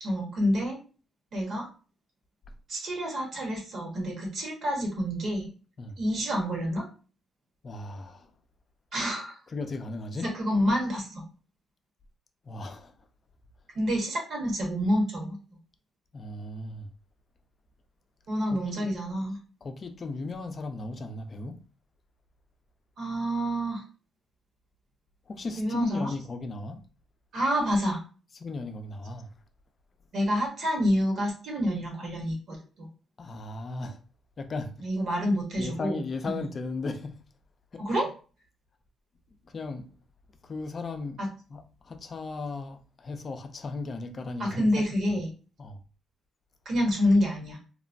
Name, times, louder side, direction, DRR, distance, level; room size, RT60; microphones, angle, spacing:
voice 1, 0.0-0.8 1.3-1.7 2.7-5.5 6.0-6.9 8.9-9.4 10.2-11.2 13.7-15.4 18.3-19.4 23.0-23.8 25.6-26.1 27.3-28.0 30.1-32.9 34.8-36.4 37.8-38.1 41.2-41.3 44.4-45.3 46.6-47.6, equal, 60° right, 1.2 m, -28 dB
voice 2, 7.6-8.3 9.5-10.3 12.4-12.9 16.1-16.9 18.5-18.9 19.6-21.6 25.3-26.8 28.3-29.3 33.2-34.0 34.4-34.9 35.6-37.2 37.7-37.8 39.4-39.9 40.4-41.2 41.5-44.8 45.6-45.8, left 3 dB, 40° left, 0.4 m, -36 dB
2.9 x 2.1 x 2.6 m
cardioid pair, 90°, 0 cm